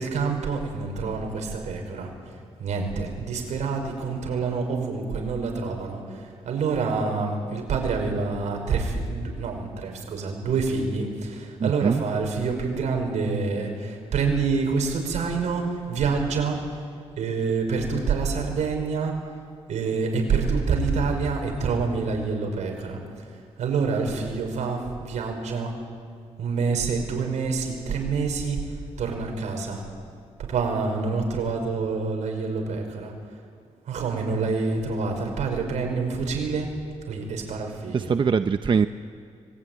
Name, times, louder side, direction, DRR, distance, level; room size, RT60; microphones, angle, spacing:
voice 1, 0.0-16.6 17.2-19.2 19.7-25.7 26.4-29.9 30.4-33.1 33.9-36.7 37.1-38.1, right 4 dB, 85° right, 3 dB, 5.6 m, -27 dB
voice 2, 11.6-12.0 37.9-38.9, right 6 dB, 45° right, 10 dB, 0.7 m, -22 dB
25.0 x 21.0 x 9.5 m, 2.1 s
cardioid pair, 90°, 12 cm